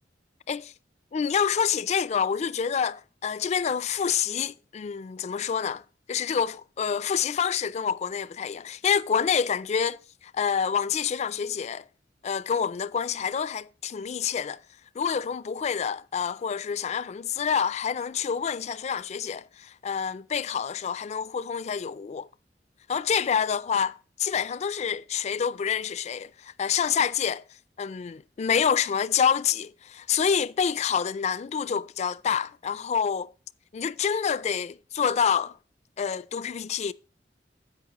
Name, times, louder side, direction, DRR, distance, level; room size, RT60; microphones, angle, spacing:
voice 1, 1.1-5.8 6.1-11.8 12.2-14.6 15.0-22.3 22.9-27.4 27.8-33.3 33.7-35.6 36.0-36.9, left 7 dB, 40° left, 0.3 m, -27 dB
15.5 x 5.3 x 2.9 m
head